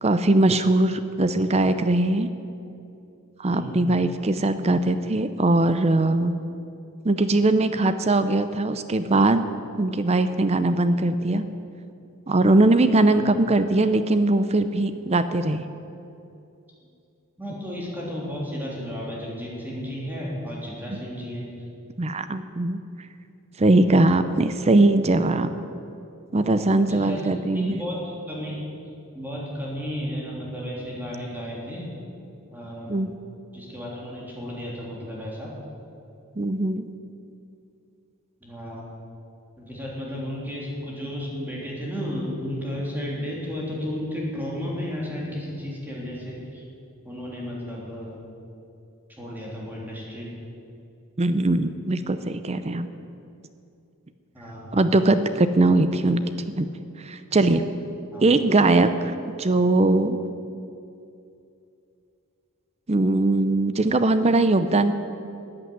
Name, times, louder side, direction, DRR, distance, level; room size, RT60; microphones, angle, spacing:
voice 1, 0.0-2.3 3.4-6.3 7.0-9.4 9.8-11.4 12.3-15.6 20.9-21.0 22.0-22.8 23.6-25.5 26.3-27.8 32.9-33.2 36.4-36.8 51.2-52.9 54.7-56.2 56.6-56.7 57.0-57.6 58.2-60.2 62.9-64.9, right 2 dB, 30° right, 11 dB, 0.6 m, -21 dB
voice 2, 3.5-3.8 13.1-13.2 17.4-21.4 26.7-28.6 29.1-31.9 32.5-33.1 33.5-35.5 38.4-38.9 39.6-46.6 47.0-48.2 49.1-50.3 54.3-54.8 58.1-58.3, equal, 10° right, -4 dB, 3.4 m, -33 dB
14.0 x 8.8 x 9.5 m, 2.6 s
head